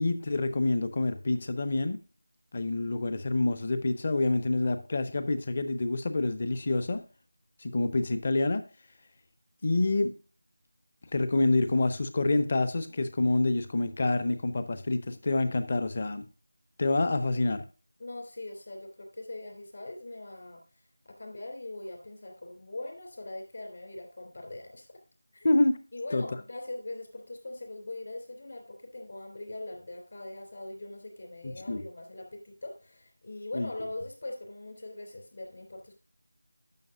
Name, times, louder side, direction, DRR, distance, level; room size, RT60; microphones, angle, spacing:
voice 1, 0.0-2.0 2.5-7.0 7.6-8.6 9.6-10.1 11.1-16.2 16.8-17.6 25.4-25.8 26.1-26.2 31.7-31.8 33.5-33.7, left 2 dB, 35° left, 0.8 m, -27 dB
voice 2, 18.0-20.6 21.2-24.9 25.3-25.5 25.9-36.0, left 2 dB, 50° left, 3.2 m, -41 dB
10.5 x 6.4 x 2.7 m
figure-of-eight pair, 170°, 0 cm